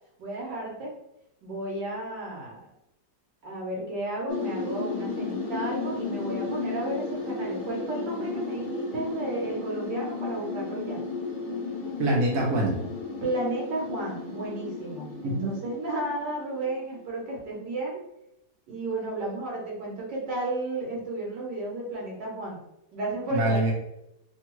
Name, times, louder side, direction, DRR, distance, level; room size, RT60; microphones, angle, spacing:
voice 1, 0.2-0.9 1.4-2.7 3.4-11.0 13.2-18.0 18.7-22.6 22.9-23.6, right 2 dB, 75° right, -3 dB, 1.6 m, -33 dB
sound 1, 4.3-17.1, left 3 dB, 60° left, 0.6 m, -34 dB
voice 2, 12.0-12.8 15.2-15.6 23.3-23.7, right 1 dB, 60° right, -2 dB, 1.1 m, -24 dB
3.5 x 2.3 x 3.0 m, 0.83 s
omnidirectional pair, 1.9 m